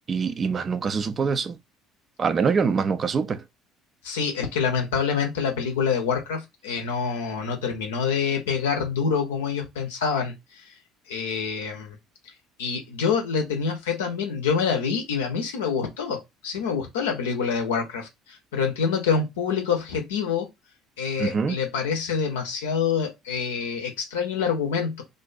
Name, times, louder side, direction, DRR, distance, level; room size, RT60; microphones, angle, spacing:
voice 1, 0.1-1.6 2.2-3.4 21.2-21.6, right 5 dB, 35° right, 0.4 m, -24 dB
voice 2, 4.0-10.3 11.1-12.0 12.6-20.5 21.0-25.0, left 6 dB, 70° left, 0.6 m, -26 dB
2.5 x 2.2 x 2.4 m
figure-of-eight pair, 55°, 0 cm